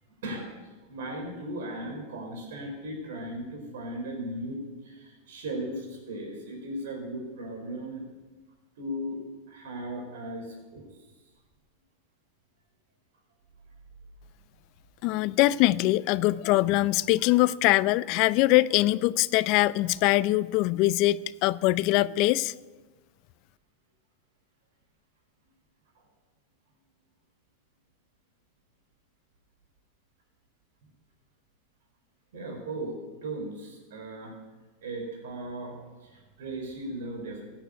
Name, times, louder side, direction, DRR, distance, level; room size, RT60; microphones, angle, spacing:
voice 1, 0.2-8.0 8.8-9.2 9.5-11.1 32.3-34.3 34.8-37.4, right 1 dB, 75° right, 1 dB, 4.7 m, -37 dB
voice 2, 15.0-22.5, left 18 dB, 55° left, 18 dB, 0.5 m, -23 dB
16.0 x 9.2 x 9.3 m, 1.2 s
hypercardioid pair, 105°, 0 cm